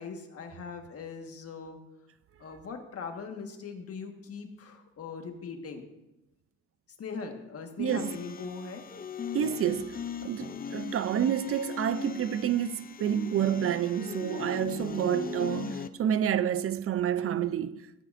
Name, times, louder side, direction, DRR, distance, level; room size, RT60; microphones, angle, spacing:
voice 1, 0.0-1.8 2.4-5.9 7.0-8.8, left 5 dB, 50° left, 1.6 m, -40 dB
voice 2, 7.8-8.2 9.3-18.0, right 10 dB, 50° right, 0.5 m, -29 dB
sound 1, 7.9-15.9, left 7 dB, 30° left, 0.5 m, -39 dB
15.5 x 8.8 x 2.6 m
cardioid pair, 90°, 30 cm